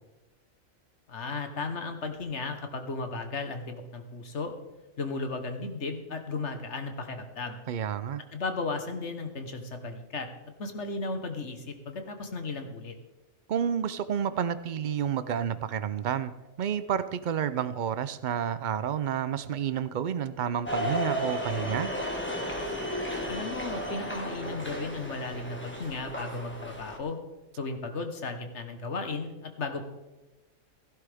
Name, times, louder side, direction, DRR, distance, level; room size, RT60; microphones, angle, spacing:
voice 1, 1.1-4.5 5.0-7.6 8.3-10.3 10.6-12.9 23.3-27.2 27.6-29.8, left 3 dB, 60° left, 6 dB, 1.5 m, -35 dB
voice 2, 7.7-8.2 13.5-16.3 16.6-21.9, right 8 dB, 65° right, 14 dB, 0.4 m, -30 dB
sound 1, 20.6-27.0, equal, 10° left, 1.6 m, -34 dB
16.0 x 11.5 x 3.5 m, 1.1 s
omnidirectional pair, 1.4 m